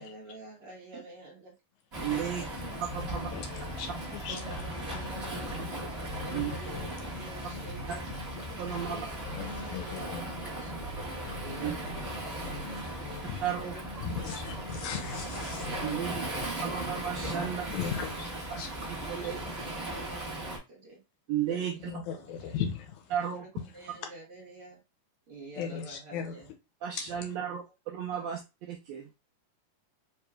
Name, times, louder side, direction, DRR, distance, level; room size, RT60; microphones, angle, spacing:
voice 1, 0.0-1.5 2.1-3.3 4.1-5.7 6.2-8.2 8.7-10.9 11.4-13.1 13.6-15.1 18.1-18.4 19.1-21.0 21.6-22.5 23.3-24.8 25.3-26.5 27.1-27.5 28.1-28.2, right 2 dB, 55° right, 1.8 m, -49 dB
Waves surf, 1.9-20.6, right 1 dB, 35° right, 1.0 m, -38 dB
voice 2, 2.0-2.4 3.1-3.3 4.3-4.4 6.3-6.5 8.6-9.0 11.6-11.7 13.4-13.7 15.8-16.2 16.6-17.6 18.5-18.6 19.1-19.4 21.3-21.9 23.1-23.4 26.8-27.6 27.9-28.4 28.7-29.1, right 9 dB, 80° right, 1.6 m, -33 dB
sound 1, 2.5-16.3, left 1 dB, 55° left, 2.1 m, -44 dB
voice 3, 3.3-5.1 6.7-6.9 8.7-8.9 9.4-10.2 13.2-13.4 14.0-16.5 17.7-18.7 21.5-21.6 21.9-23.1 23.8-24.1 25.6-26.3 27.0-27.3, left 8 dB, 75° left, 1.9 m, -38 dB
4.8 x 3.0 x 2.3 m
omnidirectional pair, 3.6 m